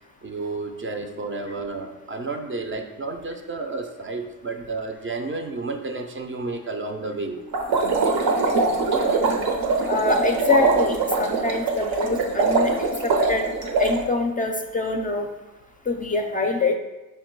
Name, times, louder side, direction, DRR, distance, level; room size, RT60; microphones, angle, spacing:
voice 1, 0.2-7.4, right 3 dB, 35° right, 4 dB, 0.4 m, -31 dB
sound 1, 7.5-14.0, right 3 dB, 80° right, 0.8 m, -22 dB
voice 2, 9.9-12.7 13.0-13.4 13.8-15.3 15.9-16.8, left 3 dB, 25° left, 3 dB, 0.4 m, -24 dB
5.1 x 2.2 x 4.5 m, 1.0 s
cardioid pair, 105°, 36 cm